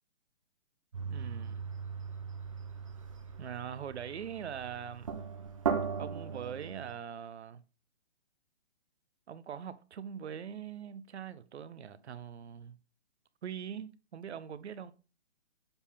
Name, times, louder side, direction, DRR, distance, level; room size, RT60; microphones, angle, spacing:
sound 1, 0.9-6.9, right 6 dB, 30° right, 0.7 m, -38 dB
voice 1, 1.1-1.7 3.4-5.1 6.0-7.6 9.3-12.8 13.4-14.9, right 8 dB, 70° right, 0.8 m, -42 dB
7.1 x 4.2 x 3.6 m
hypercardioid pair, 175°, 35 cm